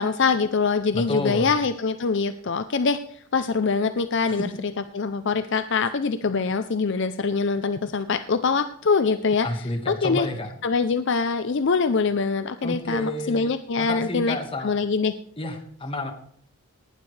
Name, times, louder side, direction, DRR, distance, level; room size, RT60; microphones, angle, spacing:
voice 1, 0.0-4.5 4.9-9.5 9.9-10.3 10.6-15.1, left 4 dB, 55° left, 11 dB, 0.5 m, -24 dB
voice 2, 0.9-1.5 4.3-4.4 9.4-10.5 12.6-13.5 13.8-14.7 15.4-16.1, left 1 dB, 25° left, 5 dB, 1.6 m, -30 dB
19.0 x 11.5 x 3.3 m, 0.65 s
head